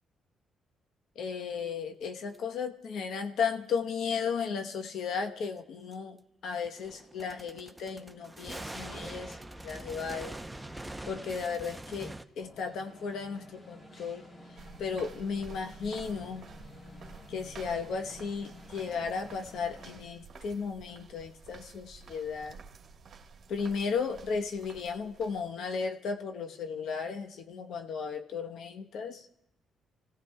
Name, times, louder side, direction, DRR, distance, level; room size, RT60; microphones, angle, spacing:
voice 1, 1.1-6.2 6.4-9.4 9.6-10.3 11.1-14.2 14.8-16.5 17.3-22.6 23.5-29.3, left 5 dB, 70° left, 6 dB, 1.0 m, -35 dB
sound 1, 2.3-2.4 3.8-3.9 5.9-6.0 6.6-12.2, right 1 dB, 10° right, 0.7 m, -43 dB
sound 2, 12.4-20.0, left 1 dB, 35° left, 3.3 m, -51 dB
sound 3, 14.6-25.7, right 5 dB, 55° right, 1.4 m, -51 dB
29.0 x 16.5 x 2.3 m, 0.83 s
cardioid pair, 90°, 0 cm